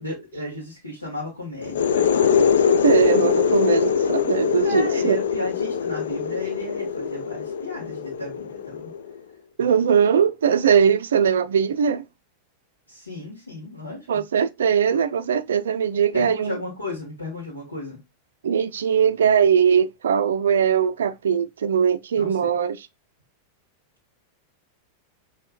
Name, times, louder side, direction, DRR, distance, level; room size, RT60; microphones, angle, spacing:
voice 1, 0.0-2.3 4.6-8.9 12.9-14.2 16.1-18.0 22.1-22.5, left 2 dB, 80° left, 1.6 m, -34 dB
sound 1, 1.6-9.2, left 7 dB, 65° left, 0.4 m, -22 dB
voice 2, 2.8-5.2 9.6-12.1 14.1-16.5 18.4-22.8, right 7 dB, 65° right, 0.4 m, -20 dB
5.5 x 3.1 x 2.4 m
figure-of-eight pair, 90°, 0 cm